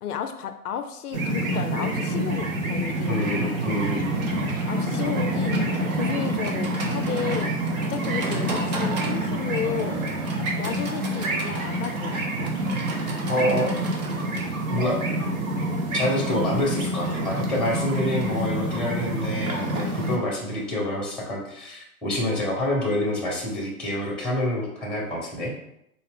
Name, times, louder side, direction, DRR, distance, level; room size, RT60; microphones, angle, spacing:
voice 1, 0.0-3.2 4.7-5.6 5.9-7.6 7.9-10.0 10.6-12.2, left 8 dB, 75° left, 8 dB, 0.5 m, -32 dB
sound 1, 1.1-20.2, right 1 dB, 65° right, 1.0 m, -27 dB
Livestock farm animals working animals, 3.0-21.0, right 2 dB, 30° right, 0.4 m, -39 dB
voice 2, 3.1-4.2 13.3-13.7 14.7-15.0 15.9-25.5, left 1 dB, ahead, -3 dB, 0.7 m, -27 dB
4.0 x 2.3 x 3.5 m, 0.81 s
hypercardioid pair, 130°, 46 cm